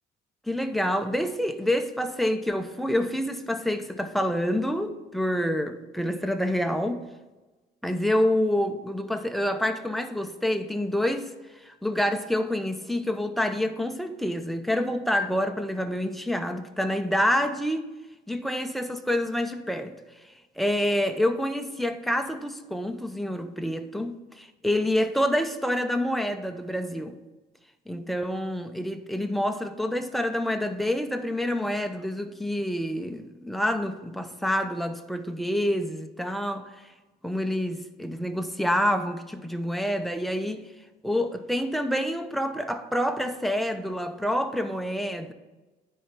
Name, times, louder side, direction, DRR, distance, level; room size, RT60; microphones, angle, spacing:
voice 1, 0.5-7.0 7.8-11.3 11.6-17.9 18.3-20.0 20.6-27.2 27.9-36.7 37.2-40.7 41.0-45.3, left 1 dB, ahead, 0.6 m, -27 dB
9.7 x 4.5 x 5.2 m
cardioid pair, 110°, 17 cm